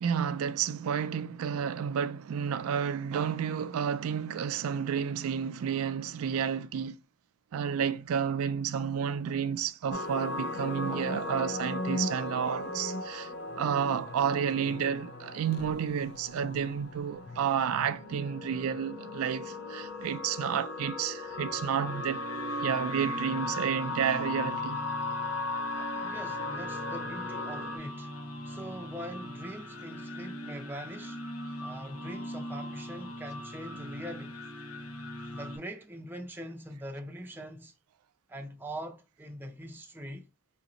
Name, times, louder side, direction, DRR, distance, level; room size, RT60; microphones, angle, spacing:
voice 1, 0.0-7.0 7.5-22.2 22.6-24.8, right 7 dB, 80° right, 0.3 m, -31 dB
sound 1, 9.9-27.8, left 2 dB, 50° left, 0.5 m, -37 dB
sound 2, 21.3-35.6, equal, 90° left, 0.7 m, -41 dB
voice 2, 25.9-28.1 28.4-31.2 31.6-34.4 35.3-37.7 38.3-40.3, equal, 10° right, 0.4 m, -42 dB
4.8 x 2.5 x 2.9 m
head